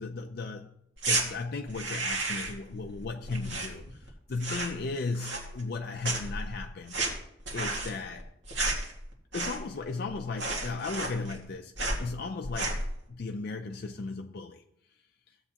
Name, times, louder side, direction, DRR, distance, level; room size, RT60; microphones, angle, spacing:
voice 1, 0.0-7.0 7.5-8.3 9.3-14.6, left 3 dB, 55° left, 0.5 m, -36 dB
sound 1, 1.0-1.2 1.7-2.6 2.9-4.1 4.3-4.8 5.1-5.8 6.0-9.8 10.1-10.2 10.4-11.5 11.8-12.0 12.4-12.9, right 2 dB, 65° right, 1.9 m, -32 dB
14.5 x 7.9 x 2.9 m
head